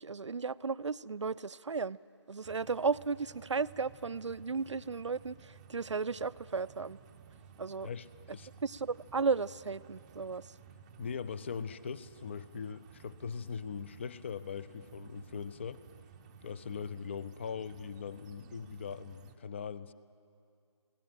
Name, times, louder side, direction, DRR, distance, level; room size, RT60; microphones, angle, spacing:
voice 1, 0.0-2.0 2.3-7.0 7.6-7.9 8.6-10.5, right 4 dB, 80° right, 17 dB, 0.5 m, -34 dB
sound 1, 2.4-19.4, right 7 dB, 15° right, 0.6 m, -56 dB
voice 2, 7.8-8.5 11.0-15.8 16.4-19.9, left 6 dB, 25° left, 16 dB, 0.4 m, -41 dB
21.0 x 17.5 x 7.9 m, 2.5 s
figure-of-eight pair, 150°, 15 cm